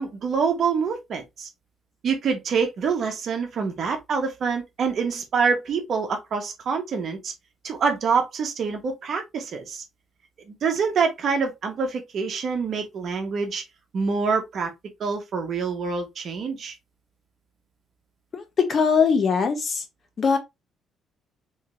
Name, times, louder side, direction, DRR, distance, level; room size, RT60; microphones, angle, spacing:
voice 1, 0.0-1.5 2.0-7.3 7.6-9.8 10.5-13.6 13.9-14.7 15.0-16.7, right 5 dB, 45° right, 1.1 m, -26 dB
voice 2, 18.3-19.8 20.2-20.4, left 5 dB, 35° left, 0.8 m, -21 dB
3.6 x 3.2 x 3.1 m
cardioid pair, 165°, 0 cm